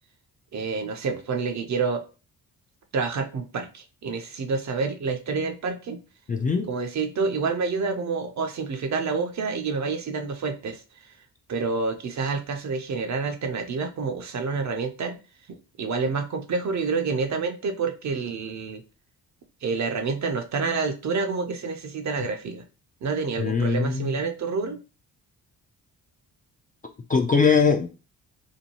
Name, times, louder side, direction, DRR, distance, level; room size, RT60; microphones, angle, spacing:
voice 1, 0.5-2.0 2.9-6.0 6.7-10.8 11.5-15.2 15.5-18.8 19.6-22.6 23.0-24.8, right 4 dB, 45° right, 6 dB, 0.6 m, -28 dB
voice 2, 6.3-6.7 23.4-24.1 27.1-27.9, left 5 dB, 25° left, 4 dB, 0.3 m, -21 dB
2.7 x 2.2 x 2.9 m, 0.33 s
supercardioid pair, 65°, 39 cm